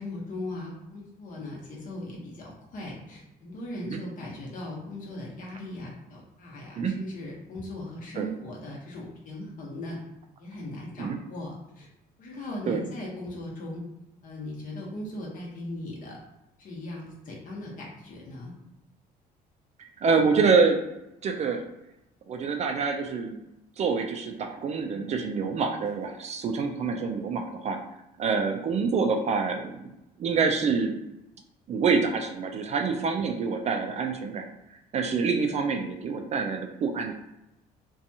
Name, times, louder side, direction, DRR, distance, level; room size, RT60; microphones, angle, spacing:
voice 1, 0.0-10.0 10.4-11.9 12.2-13.8 14.2-16.2 16.6-18.6, left 1 dB, 50° left, -3 dB, 1.0 m, -38 dB
voice 2, 20.0-20.8 21.2-21.6 22.3-23.4 23.8-27.8 28.2-29.8 30.2-31.0 31.7-34.5 34.9-37.1, right 5 dB, 40° right, 4 dB, 0.4 m, -26 dB
2.6 x 2.3 x 2.7 m, 0.89 s
cardioid pair, 110°, 17 cm